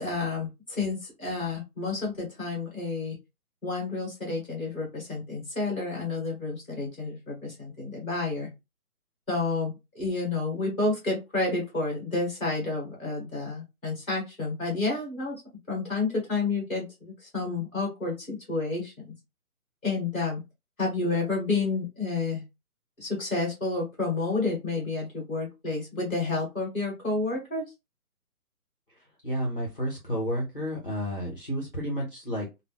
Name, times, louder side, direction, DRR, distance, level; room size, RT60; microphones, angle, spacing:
voice 1, 0.0-3.2 3.6-8.5 9.3-15.4 15.7-18.9 19.8-20.4 20.8-22.4 23.0-27.6, left 3 dB, 10° left, -2 dB, 1.0 m, -30 dB
voice 2, 29.2-32.4, equal, 40° left, -2 dB, 0.6 m, -31 dB
2.2 x 2.1 x 3.3 m, 0.24 s
hypercardioid pair, 180°, 45 cm